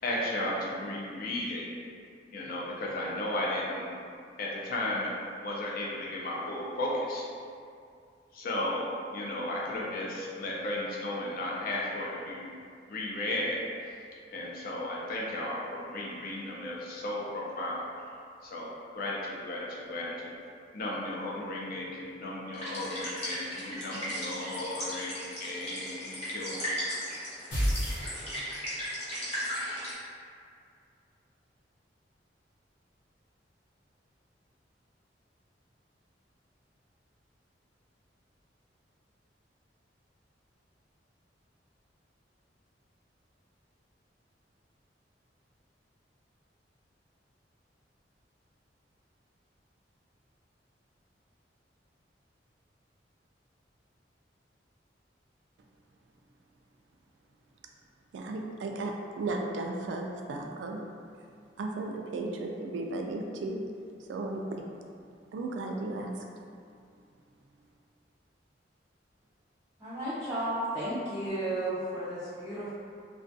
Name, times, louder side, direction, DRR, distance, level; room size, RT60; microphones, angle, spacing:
voice 1, 0.0-1.7 2.3-4.0 4.4-7.2 8.3-12.5 12.9-13.6 14.3-17.8 18.4-20.3 20.7-26.7, left 1 dB, 55° left, -4 dB, 0.5 m, -34 dB
sound 1, 22.5-29.9, equal, 35° left, 0.8 m, -37 dB
sound 2, 27.5-28.8, equal, 75° left, 0.8 m, -30 dB
voice 2, 58.1-60.9 61.6-63.6 64.1-64.6 65.3-66.1, right 2 dB, 80° right, 2 dB, 0.3 m, -35 dB
voice 3, 69.8-72.7, right 1 dB, 15° right, -11 dB, 0.5 m, -33 dB
2.3 x 2.3 x 2.6 m, 2.3 s
head